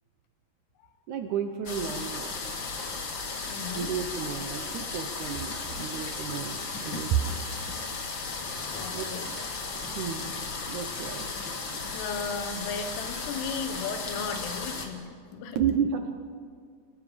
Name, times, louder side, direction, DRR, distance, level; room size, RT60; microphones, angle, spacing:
voice 1, 1.1-2.4 3.7-7.4 8.9-9.4 9.8-10.3 10.7-11.3 15.6-16.1, right 8 dB, 70° right, 6 dB, 1.9 m, -31 dB
sound 1, 1.7-14.9, left 4 dB, 40° left, 1.9 m, -35 dB
voice 2, 3.5-4.0 8.6-10.2 10.5-15.6, left 5 dB, 85° left, 8 dB, 3.4 m, -37 dB
30.0 x 19.5 x 5.2 m, 2.1 s
omnidirectional pair, 4.6 m